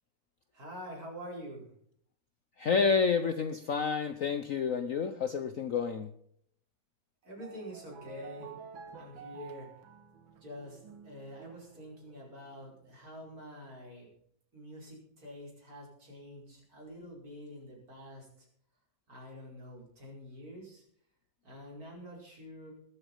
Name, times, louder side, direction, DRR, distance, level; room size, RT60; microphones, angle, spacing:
voice 1, 0.5-1.7 7.2-8.5 8.9-9.7 10.4-14.1 14.5-18.5 19.1-20.8 21.4-22.7, equal, 50° right, -3 dB, 5.7 m, -46 dB
voice 2, 2.6-6.1, left 5 dB, 55° left, 9 dB, 1.0 m, -29 dB
sound 1, 7.2-13.1, right 6 dB, 90° right, 2.2 m, -51 dB
20.0 x 8.3 x 5.5 m, 0.67 s
omnidirectional pair, 2.1 m